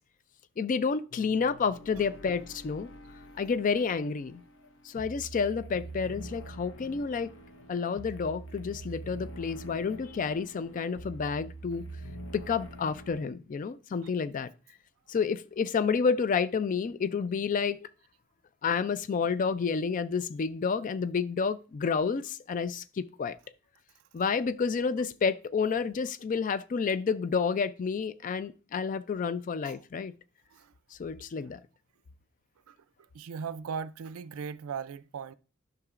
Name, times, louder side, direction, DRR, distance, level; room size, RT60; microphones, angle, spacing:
voice 1, 0.6-2.9 3.4-4.4 4.8-7.3 7.7-11.9 12.3-14.5 15.1-17.8 18.6-23.4 24.1-30.1 30.9-31.6, left 5 dB, 40° left, 0.3 m, -30 dB
sound 1, 1.1-13.2, right 1 dB, 65° left, 0.8 m, -45 dB
voice 2, 33.1-35.3, right 6 dB, 80° right, 0.4 m, -38 dB
10.5 x 5.8 x 2.4 m
head